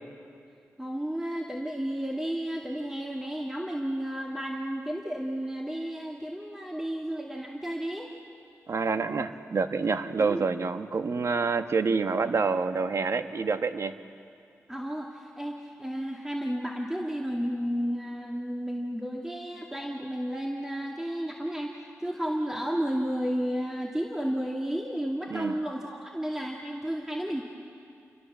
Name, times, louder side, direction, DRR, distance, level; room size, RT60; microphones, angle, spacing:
voice 1, 0.8-8.1 10.2-10.5 14.7-27.4, equal, 10° right, -1 dB, 2.2 m, -32 dB
voice 2, 8.7-13.9 25.3-25.6, right 4 dB, 65° right, 9 dB, 1.2 m, -27 dB
29.0 x 23.5 x 7.4 m, 2.4 s
cardioid pair, 65°, 5 cm